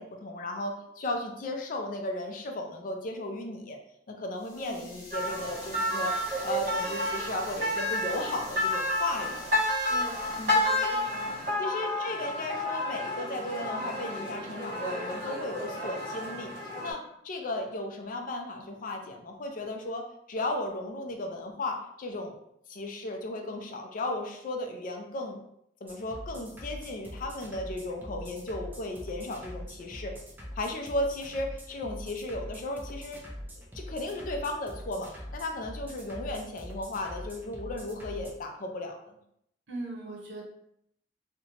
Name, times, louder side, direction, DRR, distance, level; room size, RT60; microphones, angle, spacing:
voice 1, 0.0-3.8 4.1-9.6 10.4-10.6 10.8-11.0 11.6-22.4 22.7-25.4 25.8-30.1 30.6-33.2 33.6-39.2, left 1 dB, 50° left, 3 dB, 0.4 m, -35 dB
sound 1, 4.3-11.5, left 2 dB, 80° left, 0.8 m, -47 dB
voice 2, 4.5-4.9 9.9-11.4 39.7-40.4, right 2 dB, 75° right, -1 dB, 0.8 m, -41 dB
sound 2, 5.1-16.9, left 1 dB, 50° right, 1.5 m, -31 dB
sound 3, 25.9-38.3, equal, 10° right, 0.4 m, -43 dB
2.8 x 2.1 x 2.8 m, 0.74 s
head